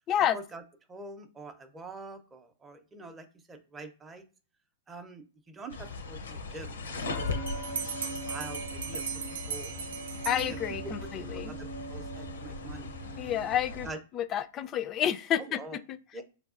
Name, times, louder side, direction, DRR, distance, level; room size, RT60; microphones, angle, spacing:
voice 1, 0.3-0.6 0.9-4.3 4.9-7.7 8.2-9.0 9.5-9.7 10.5-10.6 10.8-13.3 13.8-14.0 15.4-15.8 16.1-16.2, right 2 dB, 15° right, 0.6 m, -45 dB
sound 1, 5.7-13.9, left 2 dB, 80° left, 0.6 m, -38 dB
Bell, 7.5-11.1, right 7 dB, 70° right, 0.4 m, -38 dB
voice 2, 10.2-11.5 13.2-13.9 14.1-16.0, left 10 dB, 30° left, 0.3 m, -30 dB
4.6 x 2.3 x 2.4 m
hypercardioid pair, 110°, 0 cm